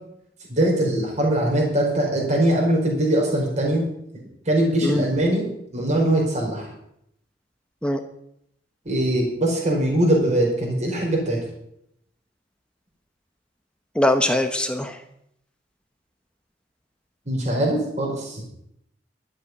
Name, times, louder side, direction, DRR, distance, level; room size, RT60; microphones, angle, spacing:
voice 1, 0.5-3.8 4.4-5.5 5.7-6.7 8.8-11.4 17.3-18.4, right 1 dB, 40° right, -1 dB, 4.8 m, -21 dB
voice 2, 14.0-15.0, left 1 dB, 5° left, 6 dB, 1.0 m, -21 dB
12.0 x 8.7 x 9.6 m, 0.75 s
head